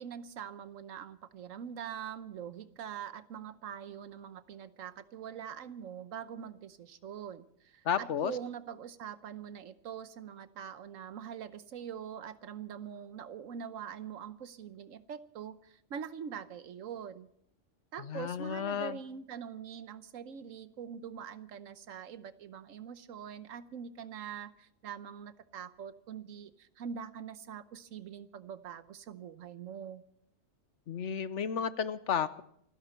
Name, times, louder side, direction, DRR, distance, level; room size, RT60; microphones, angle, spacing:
voice 1, 0.0-17.3 17.9-30.0, right 8 dB, 90° right, 13 dB, 1.3 m, -44 dB
voice 2, 7.8-8.3 18.0-19.0 30.9-32.4, left 7 dB, 70° left, 14 dB, 1.1 m, -32 dB
28.0 x 11.0 x 4.4 m, 0.68 s
omnidirectional pair, 1.3 m